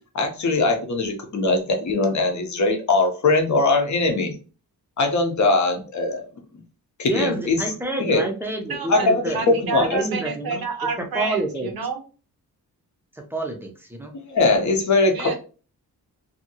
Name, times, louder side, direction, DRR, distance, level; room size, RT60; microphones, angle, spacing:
voice 1, 0.1-4.3 5.0-6.3 7.0-7.6 8.0-8.2 8.9-10.0 14.3-15.3, left 3 dB, 50° left, 3 dB, 0.7 m, -21 dB
voice 2, 7.0-10.6 11.0-11.7 13.1-14.1, right 2 dB, 5° right, 2 dB, 0.5 m, -28 dB
voice 3, 8.7-12.0 15.1-15.4, right 5 dB, 70° right, 4 dB, 0.8 m, -29 dB
2.7 x 2.7 x 2.7 m, 0.36 s
wide cardioid pair, 170°, 37 cm